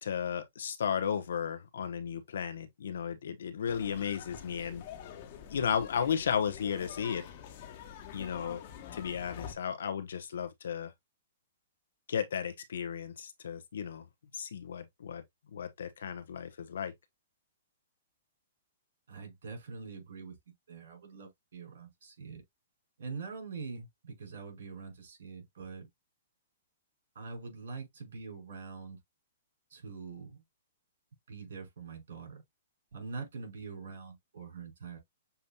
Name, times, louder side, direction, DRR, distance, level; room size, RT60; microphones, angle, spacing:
voice 1, 0.0-4.8 5.5-7.2 8.1-8.6 8.9-10.9 12.1-14.0 14.3-15.2 15.5-16.9, left 7 dB, 80° left, 0.9 m, -34 dB
sound 1, 3.7-9.5, left 9 dB, 45° left, 1.2 m, -47 dB
voice 2, 19.1-20.4 20.7-22.4 23.0-25.9 27.1-29.0 29.7-30.4 31.3-32.4 32.9-35.0, right 4 dB, 75° right, 3.9 m, -44 dB
6.9 x 2.8 x 2.3 m
hypercardioid pair, 145°, 0 cm